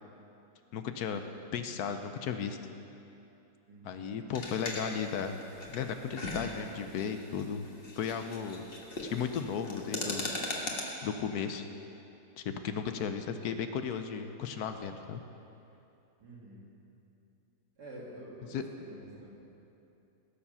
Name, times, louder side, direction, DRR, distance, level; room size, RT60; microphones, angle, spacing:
voice 1, 0.7-1.2 1.5-2.6 3.8-5.4 5.7-7.7 7.9-8.6 9.0-10.3 11.0-11.7 12.4-15.2 18.5-18.6, left 7 dB, 75° left, 8 dB, 1.1 m, -35 dB
voice 2, 3.7-4.1 13.0-13.3 16.2-16.7 17.8-19.3, right 1 dB, 75° right, -4 dB, 2.9 m, -49 dB
sound 1, 4.4-10.8, left 2 dB, 35° left, 1.5 m, -39 dB
18.5 x 7.2 x 5.5 m, 2.8 s
omnidirectional pair, 1.8 m